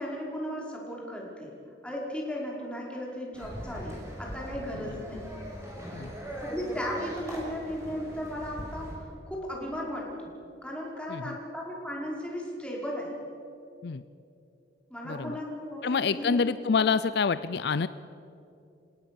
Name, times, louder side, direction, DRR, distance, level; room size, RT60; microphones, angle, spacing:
voice 1, 0.0-1.5 1.8-5.2 6.4-10.3 10.6-13.2 14.9-16.5, equal, 5° left, -3 dB, 5.4 m, -36 dB
sound 1, 3.3-9.0, equal, 15° right, 6.5 m, -40 dB
voice 2, 15.1-15.4 15.8-17.9, left 5 dB, 65° left, 15 dB, 0.5 m, -27 dB
28.5 x 17.5 x 7.1 m, 2.6 s
head